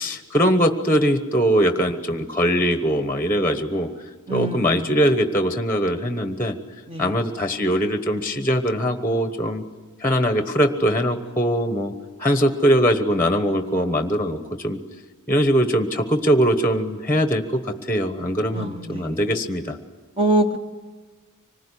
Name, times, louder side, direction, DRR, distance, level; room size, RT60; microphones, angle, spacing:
voice 1, 0.0-3.9 4.3-6.6 7.0-9.6 10.0-11.9 12.2-14.8 15.3-19.8, equal, 10° left, 8 dB, 1.1 m, -21 dB
voice 2, 4.3-4.8 6.9-7.1 18.5-19.2 20.2-20.6, right 1 dB, 25° right, 5 dB, 1.2 m, -24 dB
25.5 x 20.0 x 10.0 m, 1.4 s
head